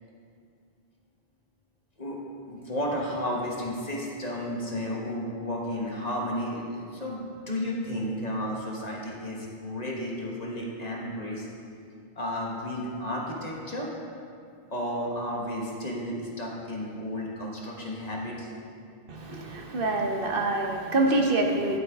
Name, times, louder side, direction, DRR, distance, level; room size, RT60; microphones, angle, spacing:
voice 1, 2.0-11.5 12.2-13.9 14.7-18.5 19.3-19.5, equal, 40° left, -2 dB, 1.3 m, -33 dB
voice 2, 19.1-21.8, right 2 dB, 60° right, 1 dB, 1.1 m, -26 dB
11.0 x 8.8 x 3.5 m, 2.3 s
omnidirectional pair, 1.1 m